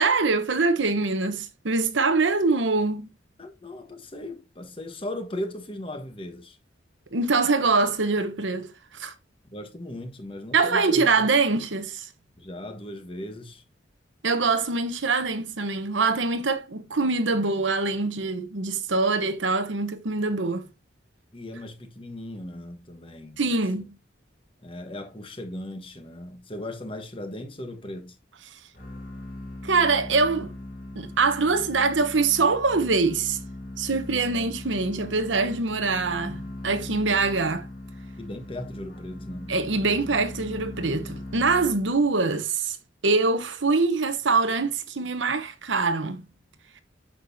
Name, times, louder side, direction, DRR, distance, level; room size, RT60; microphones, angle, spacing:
voice 1, 0.0-3.1 7.1-9.1 10.5-12.1 14.2-20.7 23.4-23.9 28.5-28.6 29.6-30.5 31.0-33.4 33.8-37.7 39.5-42.8 43.0-46.2, right 4 dB, 85° right, 1.0 m, -24 dB
voice 2, 3.4-6.6 9.5-11.0 12.4-13.6 21.3-23.4 24.6-28.1 38.2-39.5 40.1-40.2, left 1 dB, 30° left, 1.2 m, -37 dB
sound 1, 28.7-42.1, left 1 dB, 45° left, 2.0 m, -39 dB
8.8 x 6.1 x 2.7 m
head